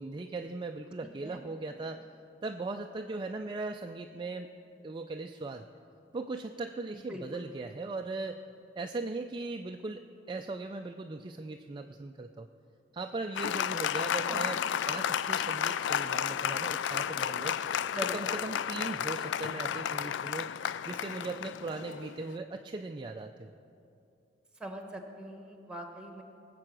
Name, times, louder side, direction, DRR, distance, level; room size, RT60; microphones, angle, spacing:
voice 1, 0.0-2.0 2.4-4.5 4.8-5.6 6.1-8.4 8.8-10.0 10.3-12.5 12.9-14.6 14.9-17.6 18.1-20.5 20.9-23.5, right 3 dB, 25° right, 5 dB, 0.4 m, -38 dB
voice 2, 7.1-7.5 14.3-14.5 17.8-18.2 24.6-26.2, right 1 dB, 5° right, 4 dB, 1.3 m, -41 dB
Applause, 13.4-22.4, left 9 dB, 80° left, 0.3 m, -32 dB
19.5 x 7.7 x 6.1 m, 2.6 s
head